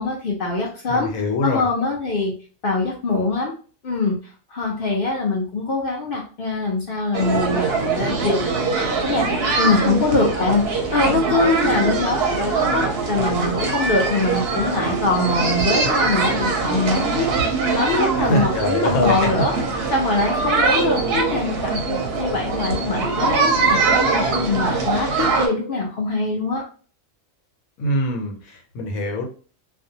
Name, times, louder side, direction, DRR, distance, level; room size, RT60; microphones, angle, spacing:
voice 1, 0.0-1.1 1.4-2.3 2.6-3.5 3.8-4.1 4.5-19.5 19.9-26.6, left 3 dB, 55° left, -1 dB, 0.7 m, -23 dB
voice 2, 0.9-1.6 18.2-19.5 27.8-29.3, left 1 dB, 85° left, 2 dB, 1.2 m, -23 dB
sound 1, 7.1-25.5, right 4 dB, 60° right, 0.7 m, -22 dB
2.5 x 2.2 x 2.7 m, 0.39 s
omnidirectional pair, 1.4 m